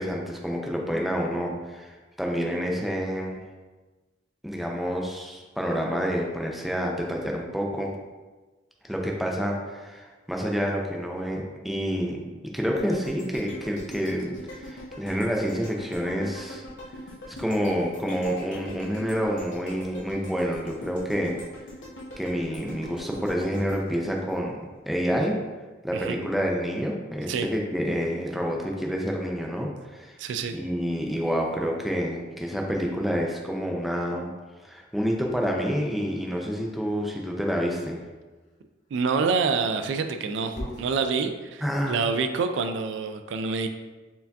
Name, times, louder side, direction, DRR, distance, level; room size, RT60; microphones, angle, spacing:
voice 1, 0.0-3.4 4.4-7.9 8.9-12.2 12.5-16.6 17.3-21.4 22.2-24.6 24.9-25.4 25.8-30.2 30.5-34.3 34.6-38.0 41.6-42.0, equal, ahead, -1 dB, 0.4 m, -28 dB
sound 1, 12.7-24.9 25.3-25.4, equal, 80° left, 0.8 m, -43 dB
voice 2, 30.2-30.5 38.9-43.7, right 5 dB, 75° right, 8 dB, 0.3 m, -27 dB
Dog, 35.9-37.5 39.1-40.9, left 1 dB, 40° left, 0.6 m, -42 dB
4.5 x 2.7 x 3.4 m, 1.3 s
head